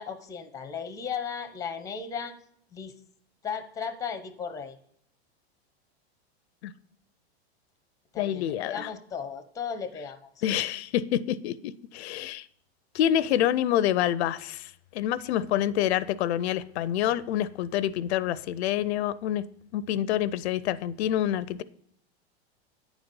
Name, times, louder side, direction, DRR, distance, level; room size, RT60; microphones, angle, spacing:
voice 1, 0.0-2.3 2.7-2.9 3.4-4.8 8.1-10.2, left 6 dB, 10° left, 0.5 m, -35 dB
voice 2, 8.2-8.9 10.4-11.5 11.9-12.5 12.9-19.4 19.7-21.6, left 11 dB, 75° left, 0.5 m, -27 dB
9.2 x 4.1 x 5.2 m
supercardioid pair, 130°, 33 cm